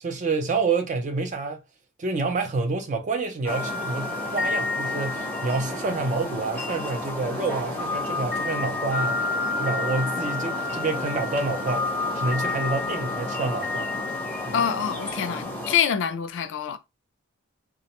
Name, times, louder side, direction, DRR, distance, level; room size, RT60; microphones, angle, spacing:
voice 1, 0.0-1.6 2.0-9.3 9.6-13.9 14.5-14.6, right 3 dB, 35° right, 0.4 m, -28 dB
sound 1, 3.4-15.7, left 2 dB, 5° left, 0.6 m, -29 dB
voice 2, 14.5-16.8, left 8 dB, 60° left, 0.4 m, -25 dB
2.4 x 2.1 x 2.9 m
head